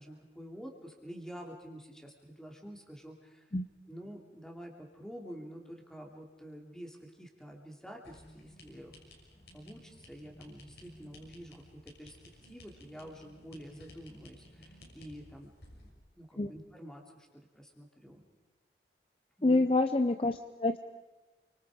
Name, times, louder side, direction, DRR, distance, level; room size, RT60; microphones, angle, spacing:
voice 1, 0.0-3.5 3.9-9.0 9.3-12.2 12.4-15.5 15.8-18.2 19.4-19.7, equal, 5° left, 1 dB, 2.8 m, -48 dB
sound 1, 8.0-15.9, left 1 dB, 70° left, 6.0 m, -55 dB
voice 2, 19.4-20.8, left 2 dB, 30° left, 8 dB, 0.6 m, -27 dB
28.5 x 24.5 x 4.9 m, 1.1 s
head